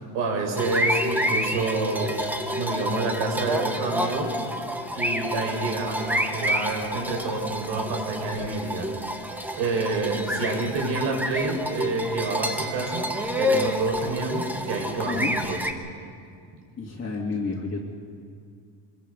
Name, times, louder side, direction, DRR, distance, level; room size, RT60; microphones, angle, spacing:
voice 1, 0.1-4.3 5.0-8.9 9.6-15.6, right 3 dB, 75° right, 1 dB, 5.5 m, -28 dB
sound 1, 0.6-15.7, equal, 5° right, 1.3 m, -29 dB
voice 2, 16.8-17.8, left 4 dB, 25° left, -3 dB, 2.3 m, -30 dB
24.5 x 21.5 x 5.4 m, 2.2 s
cardioid pair, 135°, 44 cm